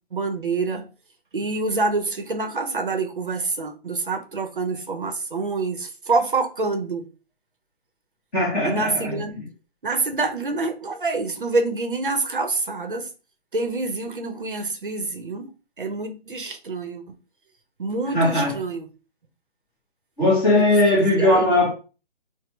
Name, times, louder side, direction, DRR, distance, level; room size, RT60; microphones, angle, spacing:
voice 1, 0.1-0.9 1.3-7.1 8.6-9.4 9.8-13.1 13.5-15.5 15.8-17.2 17.8-18.9 20.5-21.6, right 3 dB, 55° right, 0.7 m, -26 dB
voice 2, 8.3-9.1 18.1-18.6 20.2-21.7, left 1 dB, 10° left, 0.8 m, -19 dB
4.1 x 2.1 x 3.1 m
figure-of-eight pair, 140°, 31 cm